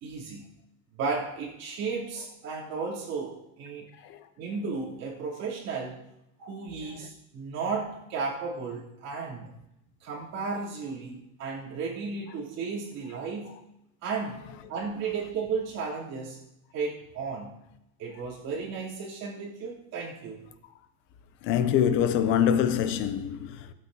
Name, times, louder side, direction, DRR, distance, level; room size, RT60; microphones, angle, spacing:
voice 1, 0.0-0.4 0.9-3.9 4.4-6.0 6.4-9.5 10.0-13.6 14.0-16.4 16.7-17.5 18.0-20.5, right 4 dB, 35° right, 3.1 m, -34 dB
voice 2, 21.4-23.7, left 9 dB, 30° left, 0.4 m, -25 dB
18.0 x 8.3 x 2.7 m
supercardioid pair, 170°, 45 cm